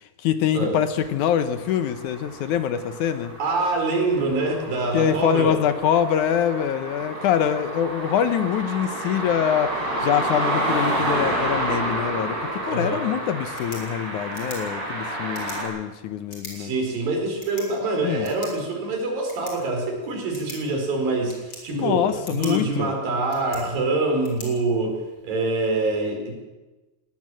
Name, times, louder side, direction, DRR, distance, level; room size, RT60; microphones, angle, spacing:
voice 1, 0.2-3.3 4.9-16.7 18.0-18.3 21.7-22.9, left 9 dB, 70° left, 11 dB, 2.1 m, -24 dB
sound 1, 1.0-15.6, right 1 dB, 25° right, 7.5 m, -30 dB
voice 2, 3.4-5.6 12.7-13.0 16.6-25.0 25.2-26.3, right 2 dB, 80° right, 2 dB, 6.4 m, -25 dB
sound 2, 13.4-25.4, left 2 dB, 35° left, 5.1 m, -45 dB
20.0 x 18.5 x 7.7 m, 1.1 s
omnidirectional pair, 4.0 m